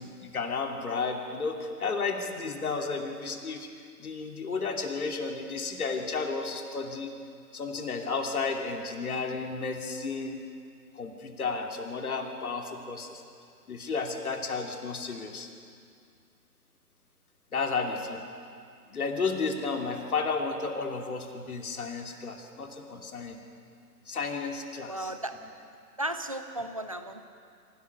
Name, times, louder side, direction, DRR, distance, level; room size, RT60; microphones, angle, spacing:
voice 1, 0.0-3.7 4.0-7.1 7.5-10.4 10.9-13.2 13.7-15.5 17.5-18.2 18.9-23.4 24.1-25.1 25.4-25.5, left 4 dB, 60° left, 3 dB, 2.9 m, -32 dB
voice 2, 24.9-25.3 26.0-27.3, right 1 dB, 20° right, 8 dB, 0.5 m, -34 dB
25.0 x 16.5 x 6.8 m, 2.3 s
figure-of-eight pair, 140°, 49 cm